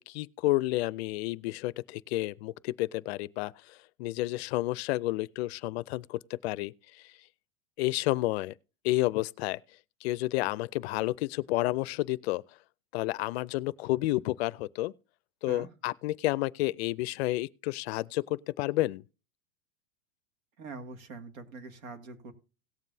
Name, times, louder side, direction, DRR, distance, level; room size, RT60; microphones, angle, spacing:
voice 1, 0.0-6.7 7.8-8.5 8.8-9.6 10.0-12.4 12.9-14.9 15.4-19.0, left 18 dB, 50° left, 0.5 m, -30 dB
voice 2, 20.6-22.3, right 3 dB, 85° right, 2.2 m, -43 dB
17.5 x 7.3 x 2.7 m
supercardioid pair, 150°, 40 cm